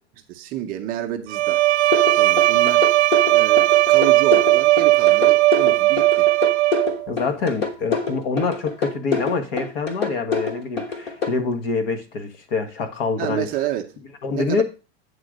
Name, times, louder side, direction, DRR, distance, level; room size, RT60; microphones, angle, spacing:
voice 1, 0.3-1.6 2.2-2.9 3.3-6.3 13.2-13.9 14.3-14.6, right 12 dB, 25° right, 0.6 m, -29 dB
Bowed string instrument, 1.3-7.1, right 17 dB, 85° right, 0.6 m, -17 dB
sound 1, 1.9-11.3, left 5 dB, 30° left, 1.3 m, -26 dB
voice 2, 7.1-13.5 14.2-14.6, left 4 dB, 60° left, 1.6 m, -25 dB
8.9 x 3.8 x 6.3 m
supercardioid pair, 165°, 33 cm